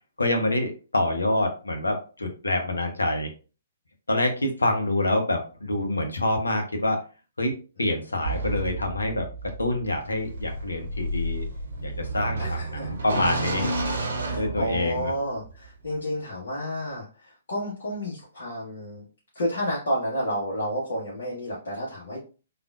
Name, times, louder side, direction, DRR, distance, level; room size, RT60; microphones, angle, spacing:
voice 1, 0.2-3.3 4.1-7.0 7.4-7.5 7.8-9.3 9.6-11.4 11.8-13.7 14.3-15.1, left 1 dB, 80° left, 4 dB, 0.8 m, -26 dB
sound 1, 8.3-15.2, right 2 dB, 65° right, 0.8 m, -31 dB
voice 2, 12.4-12.9 14.2-19.0 19.3-22.2, equal, 60° left, -5 dB, 1.1 m, -31 dB
3.5 x 2.4 x 2.3 m, 0.35 s
figure-of-eight pair, 125°, 0 cm